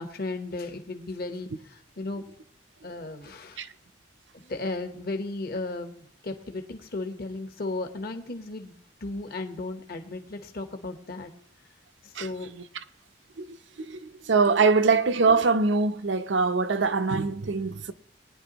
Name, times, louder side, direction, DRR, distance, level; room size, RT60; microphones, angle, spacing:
voice 1, 0.0-2.2 2.8-3.7 4.3-8.7 9.0-11.3 12.0-12.5, left 2 dB, 55° left, 1.1 m, -35 dB
voice 2, 12.1-12.6 13.4-17.9, right 4 dB, 85° right, 0.7 m, -24 dB
20.5 x 10.0 x 3.0 m
head